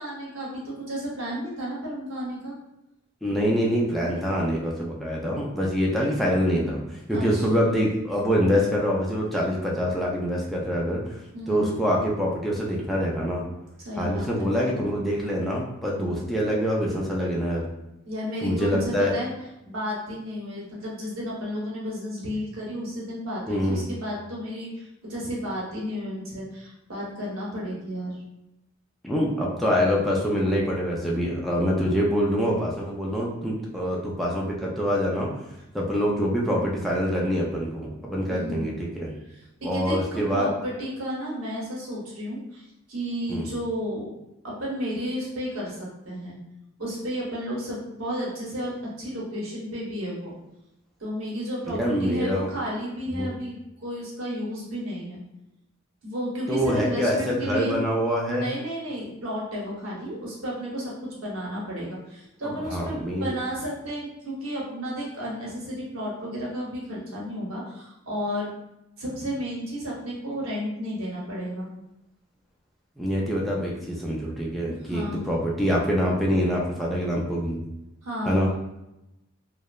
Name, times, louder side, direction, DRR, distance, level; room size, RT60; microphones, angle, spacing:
voice 1, 0.0-2.6 7.1-7.6 11.3-11.9 13.8-14.9 18.0-19.3 19.6-28.2 38.3-38.7 39.3-44.1 44.4-46.4 46.8-50.3 51.0-55.2 56.0-57.8 58.2-68.5 69.0-71.7 74.6-75.3 78.0-78.5, equal, 80° right, -4 dB, 1.0 m, -32 dB
voice 2, 3.2-11.2 11.5-13.4 14.0-17.7 18.4-19.1 23.5-23.9 29.0-35.3 35.7-39.1 39.6-40.5 43.3-43.5 51.7-52.5 53.1-53.3 56.5-58.5 62.4-63.3 73.0-77.6 78.3-78.5, equal, ahead, -4 dB, 0.3 m, -25 dB
2.8 x 2.0 x 2.3 m, 0.90 s
head